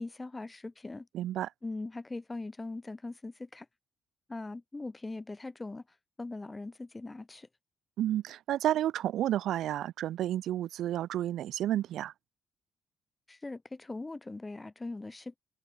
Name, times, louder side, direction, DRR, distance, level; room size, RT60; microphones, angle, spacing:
voice 1, 0.0-1.1 1.6-3.7 4.3-5.8 6.2-7.5 13.3-15.4, left 2 dB, 20° left, 5.3 m, -40 dB
voice 2, 1.1-1.5 8.0-12.1, right 12 dB, 80° right, 3.1 m, -31 dB
cardioid pair, 90°, 0 cm